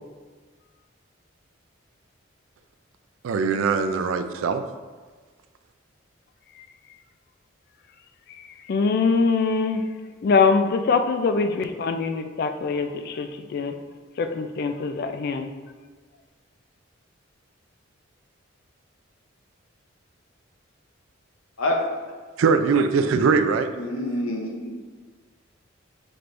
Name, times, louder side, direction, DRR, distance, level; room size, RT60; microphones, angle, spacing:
voice 1, 3.2-4.6 22.4-23.7, right 5 dB, 75° right, 9 dB, 0.3 m, -21 dB
voice 2, 8.3-9.8 10.2-13.8 14.2-15.5, left 4 dB, 50° left, 7 dB, 0.3 m, -23 dB
voice 3, 23.8-24.7, left 1 dB, 80° left, 1 dB, 0.8 m, -26 dB
5.9 x 3.3 x 2.6 m, 1.4 s
head